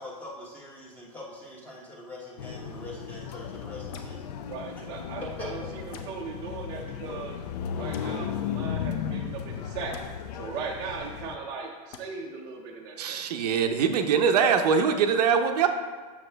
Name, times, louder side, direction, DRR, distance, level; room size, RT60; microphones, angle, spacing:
voice 1, 0.0-4.2 5.4-5.5, left 2 dB, 10° left, -3 dB, 0.9 m, -43 dB
sound 1, 2.4-11.4, left 8 dB, 80° left, 0.6 m, -35 dB
sound 2, 3.9-4.2 5.9-6.1 7.9-8.1 9.9-10.1 11.9-12.0 13.9-14.0, left 6 dB, 30° left, 0.5 m, -45 dB
voice 2, 4.5-7.4 7.7-9.9 10.3-13.2, right 5 dB, 20° right, -2 dB, 0.6 m, -38 dB
voice 3, 13.0-15.7, right 6 dB, 80° right, 5 dB, 0.7 m, -23 dB
7.3 x 6.5 x 3.4 m, 1.4 s
supercardioid pair, 170°, 20 cm